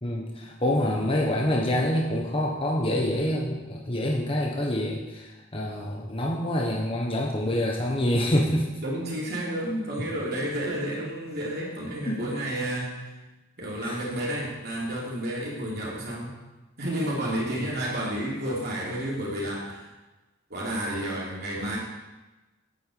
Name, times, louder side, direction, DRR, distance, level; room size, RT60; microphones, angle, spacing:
voice 1, 0.0-8.7 12.0-12.2 13.8-14.0 17.6-17.7, left 1 dB, 25° left, -1 dB, 1.3 m, -26 dB
voice 2, 8.8-13.2 13.6-16.4 16.8-19.9 20.5-21.8, right 1 dB, 50° right, -5 dB, 3.4 m, -31 dB
9.0 x 8.0 x 8.6 m, 1.1 s
head